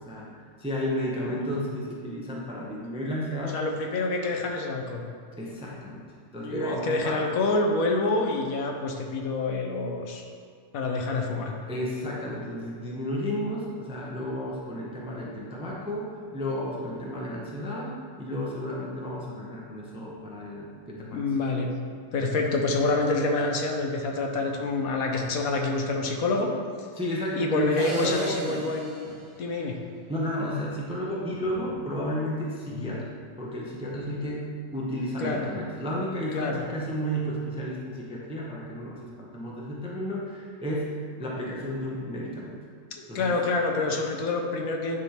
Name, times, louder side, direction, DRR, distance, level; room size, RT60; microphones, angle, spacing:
voice 1, 0.0-3.6 5.4-6.0 6.3-7.2 11.7-17.9 18.2-21.3 26.9-28.6 30.1-42.6 43.1-43.3, equal, 5° right, -4 dB, 0.6 m, -32 dB
voice 2, 3.5-5.0 6.4-10.2 10.7-11.6 21.1-21.7 22.1-26.5 27.3-29.8 35.2-35.5 36.3-36.6 42.9-45.0, left 3 dB, 70° left, 2 dB, 1.2 m, -27 dB
sound 1, 27.8-30.1, right 2 dB, 80° right, 1.8 m, -39 dB
9.9 x 3.8 x 4.3 m, 2.1 s
omnidirectional pair, 1.6 m